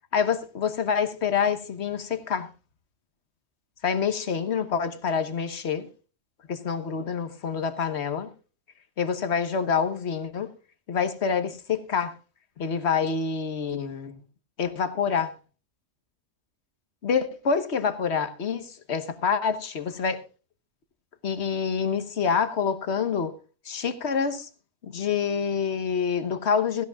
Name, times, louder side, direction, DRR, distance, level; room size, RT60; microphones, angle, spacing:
voice 1, 0.1-2.5 3.8-5.9 6.5-8.3 9.0-10.5 10.9-12.2 12.6-14.2 14.6-15.3 17.0-20.2 21.2-23.3 23.6-24.5 24.8-26.9, left 6 dB, 60° left, 1.5 m, -27 dB
17.0 x 15.5 x 2.3 m
omnidirectional pair, 1.3 m